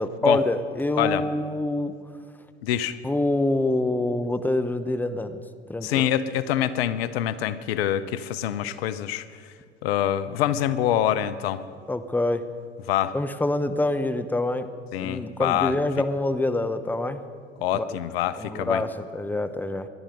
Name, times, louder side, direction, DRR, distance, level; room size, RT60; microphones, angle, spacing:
voice 1, 0.0-2.0 3.0-5.4 5.7-6.1 11.9-12.4 13.1-14.7 15.0-17.2 17.7-18.0 18.4-19.9, left 2 dB, 5° left, 10 dB, 0.9 m, -26 dB
voice 2, 2.6-3.0 5.8-9.2 9.8-11.6 12.9-13.1 14.9-15.7 17.6-18.8, left 11 dB, 70° left, 15 dB, 0.7 m, -25 dB
19.0 x 12.0 x 5.3 m, 2.1 s
hypercardioid pair, 70°, 31 cm